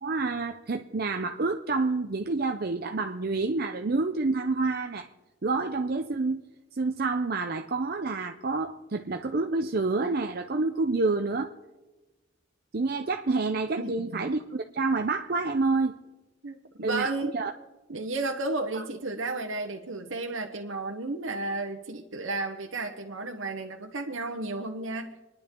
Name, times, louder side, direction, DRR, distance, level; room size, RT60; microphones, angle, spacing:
voice 1, 0.0-5.1 5.4-6.4 6.7-11.5 12.7-15.9 16.8-17.5 18.7-18.8, right 3 dB, 50° right, 0.6 m, -28 dB
voice 2, 13.8-14.3 16.4-17.3 17.9-25.1, right 2 dB, 85° right, 1.1 m, -33 dB
29.0 x 10.5 x 3.8 m
head